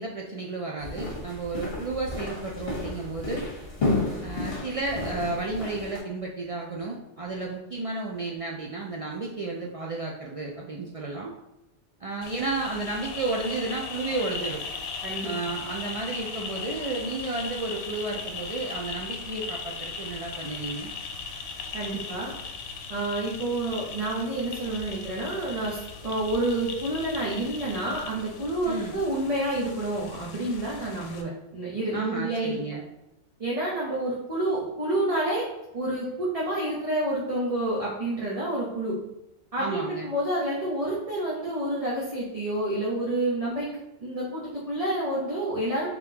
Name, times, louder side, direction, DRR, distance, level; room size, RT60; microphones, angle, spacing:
voice 1, 0.0-3.4 4.2-11.3 12.0-14.6 15.2-20.9 28.6-29.0 31.9-32.8 39.6-40.1, right 3 dB, 65° right, -3 dB, 0.3 m, -32 dB
sound 1, 0.8-6.0, left 2 dB, 55° left, 1.4 m, -32 dB
sound 2, 12.2-31.2, left 5 dB, 85° left, 0.9 m, -38 dB
voice 2, 21.7-22.3 22.9-32.6 33.4-35.5 35.7-39.0 39.5-45.9, right 1 dB, 35° right, -6 dB, 0.8 m, -29 dB
3.9 x 3.6 x 2.8 m, 0.90 s
omnidirectional pair, 1.2 m